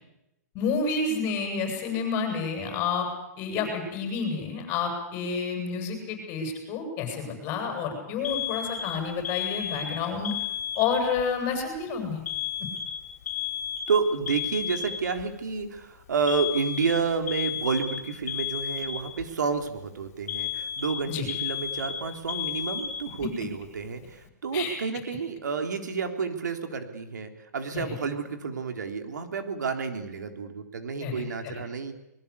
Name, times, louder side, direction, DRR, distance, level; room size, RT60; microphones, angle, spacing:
voice 1, 0.5-3.1 3.4-10.3 10.8-12.2 21.1-21.3 24.5-24.8 27.7-27.8 31.0-31.2, left 5 dB, 25° left, 4 dB, 7.5 m, -29 dB
Alarm, 8.2-11.2 12.3-15.2 16.3-19.2 20.3-23.3, left 9 dB, 60° left, 3.9 m, -33 dB
voice 2, 13.9-31.9, right 5 dB, 90° right, 6 dB, 3.7 m, -30 dB
23.5 x 21.5 x 8.5 m, 0.89 s
hypercardioid pair, 155°, 9 cm